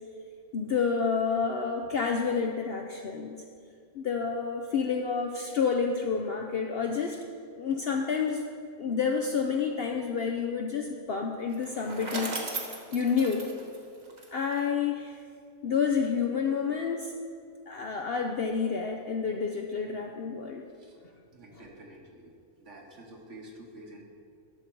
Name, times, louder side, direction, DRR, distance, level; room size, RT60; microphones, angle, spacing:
voice 1, 0.5-3.4 3.9-7.3 7.6-8.4 8.8-12.3 12.9-13.5 14.3-15.2 15.6-17.1 17.7-20.6, left 6 dB, 60° left, 3 dB, 0.6 m, -29 dB
Bicycle, 11.5-14.7, right 2 dB, 35° right, 1.0 m, -37 dB
voice 2, 21.3-22.3 22.6-24.0, right 1 dB, 60° right, 0 dB, 1.6 m, -49 dB
11.5 x 6.6 x 4.5 m, 2.2 s
omnidirectional pair, 1.5 m